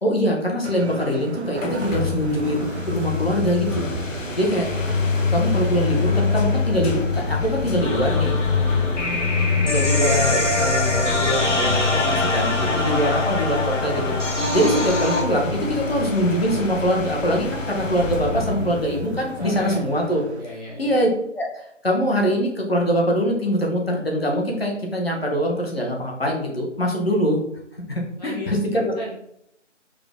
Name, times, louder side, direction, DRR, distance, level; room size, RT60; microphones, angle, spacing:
voice 1, 0.0-3.9 4.3-4.7 5.3-8.3 9.6-20.2 20.8-27.4 27.9-28.9, equal, 50° left, 0 dB, 1.1 m, -23 dB
sound 1, 0.6-20.4, right 3 dB, 60° right, 0.5 m, -35 dB
sound 2, 1.6-20.1, left 5 dB, 90° left, 0.7 m, -26 dB
sound 3, 7.8-15.2, left 1 dB, 70° left, 1.3 m, -25 dB
voice 2, 12.5-13.2 18.4-18.9 19.4-19.8 20.4-21.0 28.2-28.5 29.0-29.1, left 1 dB, 35° left, -7 dB, 0.7 m, -35 dB
4.7 x 2.2 x 3.5 m, 0.74 s
figure-of-eight pair, 170°, 37 cm